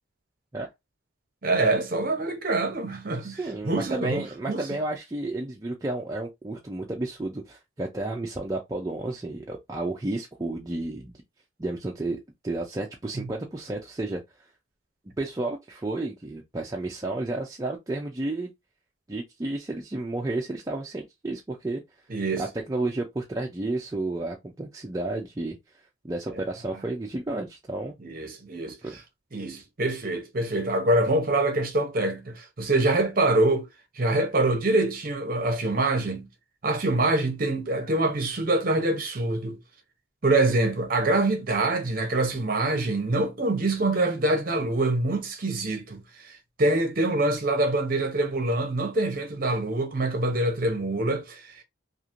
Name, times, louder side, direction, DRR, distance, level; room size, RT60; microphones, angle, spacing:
voice 1, 1.4-3.4 3.6-4.7 22.1-22.5 28.0-28.8 29.3-33.7 34.0-36.3 36.6-39.6 40.2-51.6, right 2 dB, 45° right, 0.7 m, -25 dB
voice 2, 3.2-11.2 11.6-14.2 15.2-18.5 19.1-21.8 22.4-25.6 26.0-27.9 28.8-28.9, right 2 dB, 15° right, 0.3 m, -32 dB
3.0 x 2.4 x 2.4 m
head